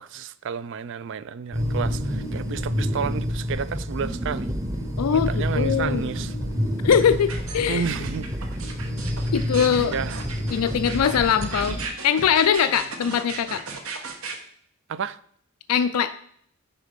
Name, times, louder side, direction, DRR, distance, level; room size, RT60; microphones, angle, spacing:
voice 1, 0.0-4.5 5.1-6.4 7.7-8.3 9.8-10.2 14.9-15.2, right 6 dB, 55° right, 0.4 m, -31 dB
sound 1, 1.5-11.9, equal, 15° right, 0.8 m, -28 dB
voice 2, 5.0-6.1 6.8-7.9 9.3-9.9 10.5-11.8 12.0-13.6 15.7-16.1, left 7 dB, 90° left, 0.4 m, -21 dB
sound 2, 6.9-14.4, right 4 dB, 75° right, 1.1 m, -35 dB
9.9 x 4.1 x 5.1 m
head